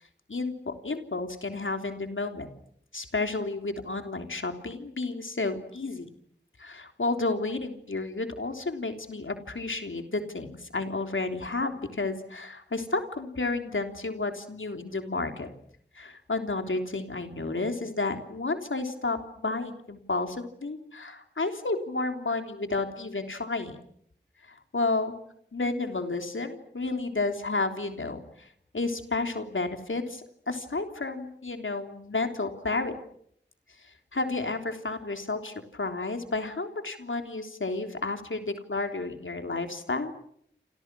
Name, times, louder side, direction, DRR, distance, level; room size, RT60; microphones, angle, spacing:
voice 1, 0.3-2.5 2.9-6.1 6.6-15.5 16.0-23.8 24.5-25.2 25.5-28.5 28.7-33.0 33.8-40.1, left 3 dB, 85° left, 6 dB, 3.4 m, -31 dB
28.5 x 28.0 x 6.2 m, 0.69 s
wide cardioid pair, 40°, 20 cm